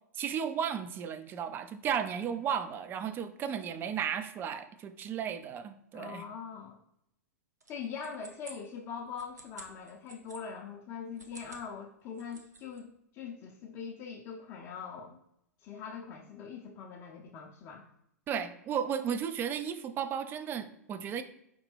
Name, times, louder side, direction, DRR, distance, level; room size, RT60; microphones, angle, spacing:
voice 1, 0.1-6.2 18.3-21.2, right 8 dB, 25° right, 9 dB, 0.4 m, -34 dB
voice 2, 5.9-6.8 7.7-15.2 15.6-17.9 18.3-18.5, left 6 dB, 35° left, -1 dB, 0.5 m, -42 dB
sound 1, 7.6-10.4 11.0-11.7 12.0-12.8, right 3 dB, 80° right, 0.7 m, -51 dB
5.1 x 2.9 x 3.2 m, 0.77 s
figure-of-eight pair, 100°, 9 cm